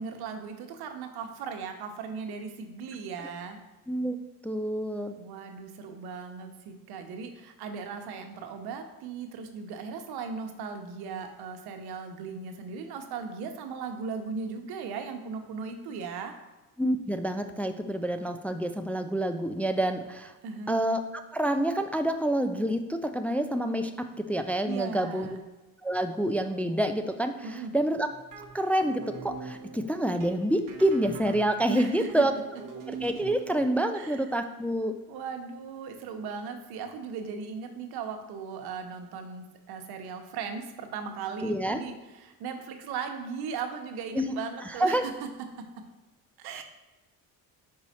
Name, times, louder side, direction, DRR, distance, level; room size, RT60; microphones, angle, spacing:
voice 1, 0.0-3.6 5.2-16.3 20.4-20.8 24.6-25.4 27.4-27.7 31.7-32.2 33.9-34.2 35.1-45.3 45.6-45.7 46.4-46.6, right 5 dB, 85° right, 6 dB, 0.9 m, -37 dB
voice 2, 4.4-5.1 16.8-20.3 20.7-21.0 21.3-23.9 24.3-25.3 25.8-28.1 28.5-32.3 32.9-34.9 41.4-41.8 44.1-44.3 44.7-45.1 46.5-46.6, right 1 dB, 5° left, 6 dB, 0.3 m, -27 dB
sound 1, 28.1-33.9, right 4 dB, 60° right, 1.1 m, -43 dB
5.2 x 4.7 x 4.2 m, 1.1 s
cardioid pair, 100°, 37 cm